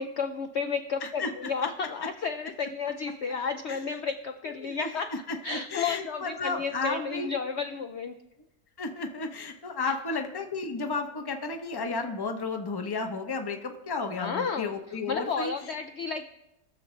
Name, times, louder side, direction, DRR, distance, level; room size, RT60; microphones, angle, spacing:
voice 1, 0.0-5.1 5.4-8.2 9.8-9.9 14.2-14.7 15.1-16.3, left 5 dB, 80° left, 7 dB, 0.6 m, -32 dB
voice 2, 5.3-7.3 8.8-15.5, left 3 dB, 30° left, 5 dB, 0.4 m, -33 dB
20.5 x 7.1 x 3.2 m, 0.94 s
omnidirectional pair, 1.8 m